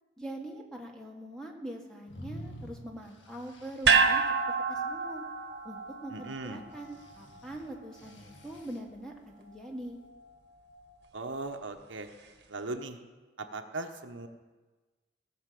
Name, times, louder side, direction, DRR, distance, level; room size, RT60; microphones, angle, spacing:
voice 1, 0.2-4.2 4.7-5.2 5.6-10.0, right 1 dB, 5° left, 0 dB, 1.6 m, -43 dB
sound 1, 2.1-4.0 6.8-8.8, equal, 70° left, 1.8 m, -48 dB
sound 2, 3.8-8.2 8.5-8.6, right 5 dB, 55° right, 1.2 m, -29 dB
voice 2, 6.1-6.6 11.1-12.1 12.5-13.0 13.4-14.3, right 2 dB, 75° right, 5 dB, 1.0 m, -38 dB
18.0 x 6.1 x 7.6 m, 1.3 s
head